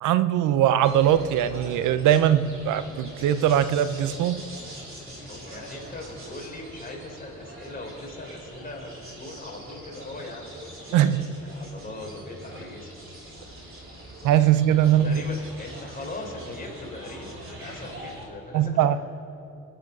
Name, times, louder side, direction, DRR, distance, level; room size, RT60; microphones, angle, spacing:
voice 1, 0.0-4.4 10.9-11.3 14.2-15.2 18.5-19.0, right 11 dB, 85° right, 13 dB, 0.6 m, -21 dB
sound 1, 0.8-18.3, equal, 45° right, 3.8 m, -43 dB
voice 2, 5.3-12.9 14.8-19.0, left 2 dB, 30° left, 0 dB, 4.0 m, -40 dB
22.0 x 7.9 x 6.0 m, 2.7 s
cardioid pair, 90°, 30 cm